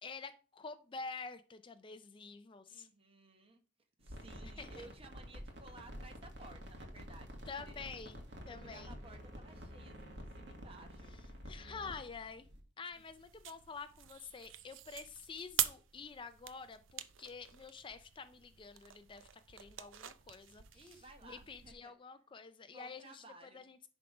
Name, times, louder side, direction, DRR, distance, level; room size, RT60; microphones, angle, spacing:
voice 1, 0.0-2.9 4.4-4.9 7.5-9.0 11.5-12.5 12.8-23.2 23.5-23.8, left 4 dB, 25° left, 10 dB, 0.4 m, -48 dB
voice 2, 2.7-3.6 4.0-7.8 8.5-11.1 20.7-21.9 22.7-23.6, right 2 dB, 30° right, 5 dB, 1.2 m, -57 dB
sound 1, 4.0-12.6, equal, 60° right, 1.8 m, -49 dB
sound 2, 12.9-21.7, right 12 dB, 85° right, 0.6 m, -44 dB
10.5 x 3.6 x 4.8 m, 0.37 s
head